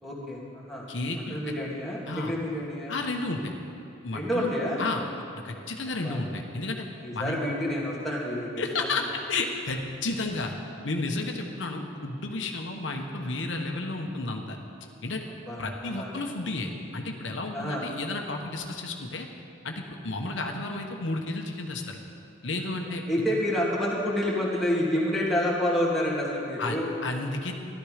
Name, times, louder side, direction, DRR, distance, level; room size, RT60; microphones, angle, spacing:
voice 1, 0.0-0.8 1.3-2.9 4.1-4.8 6.0-6.2 7.0-8.5 15.5-16.1 17.5-17.8 23.1-26.9, left 1 dB, ahead, -6 dB, 2.2 m, -28 dB
voice 2, 0.9-1.5 2.1-2.3 2.9-3.5 4.0-5.0 5.4-6.9 7.1-7.4 8.6-10.5 10.8-14.6 15.0-15.3 15.6-19.3 19.6-22.0 22.4-23.3 26.6-27.5, left 2 dB, 80° left, 3 dB, 1.1 m, -32 dB
13.5 x 12.0 x 5.0 m, 2.6 s
head